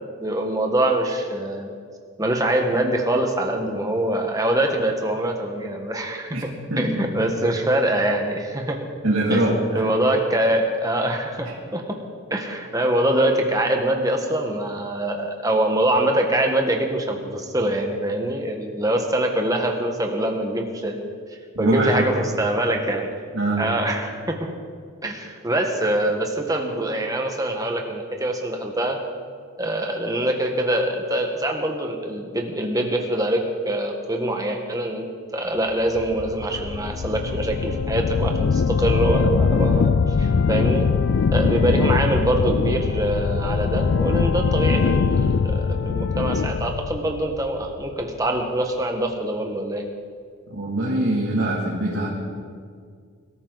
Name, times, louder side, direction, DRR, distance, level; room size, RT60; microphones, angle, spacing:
voice 1, 0.2-1.7 2.2-6.5 6.8-8.8 9.3-9.4 9.7-12.0 12.3-21.1 21.6-23.1 23.6-24.5 25.0-29.0 29.6-35.0 35.3-40.9 41.3-49.8, right 1 dB, 15° right, 2 dB, 1.4 m, -24 dB
voice 2, 9.0-9.9 21.5-22.0 23.3-23.7 41.4-41.5 50.5-52.1, right 1 dB, 75° right, -6 dB, 2.8 m, -23 dB
sound 1, 36.0-48.0, left 5 dB, 60° left, 0.3 m, -22 dB
22.5 x 13.5 x 4.1 m, 2.1 s
head